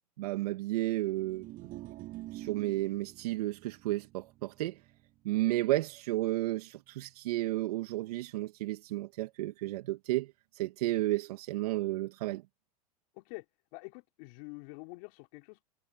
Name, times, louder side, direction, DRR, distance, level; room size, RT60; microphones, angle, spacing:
voice 1, 0.2-1.5 2.3-4.8 5.2-12.4, right 17 dB, 75° right, 2.1 m, -32 dB
sound 1, 1.0-7.4, right 17 dB, 50° right, 6.3 m, -49 dB
voice 2, 13.2-13.5 13.7-15.6, left 30 dB, 65° left, 4.1 m, -47 dB
hypercardioid pair, 105°, 20 cm